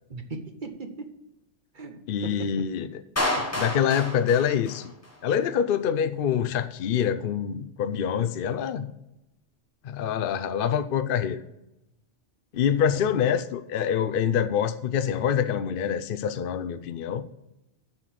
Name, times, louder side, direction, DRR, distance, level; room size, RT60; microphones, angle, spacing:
voice 1, 0.1-1.1 1.7-2.7 12.9-13.1, right 3 dB, 45° right, 6 dB, 1.1 m, -38 dB
voice 2, 2.1-3.0 3.4-4.9 5.2-8.9 9.8-11.4 12.5-17.2, left 8 dB, 55° left, 11 dB, 0.7 m, -26 dB
Clapping, 3.2-5.2, left 1 dB, 15° left, 1.1 m, -29 dB
7.4 x 6.6 x 7.7 m, 0.91 s
omnidirectional pair, 1.2 m